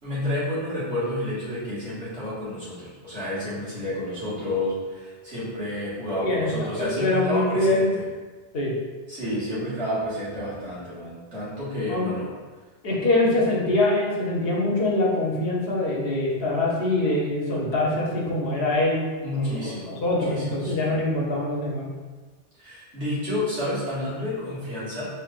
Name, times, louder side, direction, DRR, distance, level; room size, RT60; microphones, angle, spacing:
voice 1, 0.0-8.0 9.1-12.3 19.2-21.0 22.6-25.1, left 1 dB, 65° right, -11 dB, 2.0 m, -30 dB
voice 2, 6.2-7.9 8.5-8.7 11.9-12.1 12.8-19.0 19.4-21.9, left 2 dB, 55° left, -3 dB, 1.0 m, -24 dB
4.5 x 3.2 x 2.5 m, 1.4 s
omnidirectional pair, 1.3 m